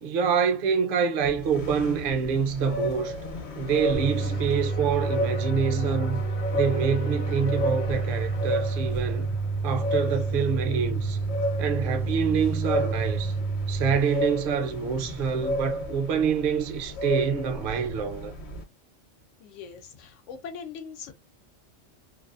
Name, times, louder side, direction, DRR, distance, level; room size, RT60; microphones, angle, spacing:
voice 1, 0.0-3.1 3.6-6.2 6.5-9.3 9.6-11.2 11.6-13.4 13.7-18.3, right 6 dB, 55° right, 0.7 m, -26 dB
sound 1, 1.2-18.6, left 1 dB, 65° left, 1.0 m, -34 dB
sound 2, 3.2-10.3, left 5 dB, 40° left, 0.5 m, -43 dB
sound 3, 3.9-13.9, right 4 dB, 20° right, 0.3 m, -29 dB
voice 2, 19.4-21.1, left 6 dB, 90° left, 1.0 m, -41 dB
2.6 x 2.3 x 2.3 m
omnidirectional pair, 1.2 m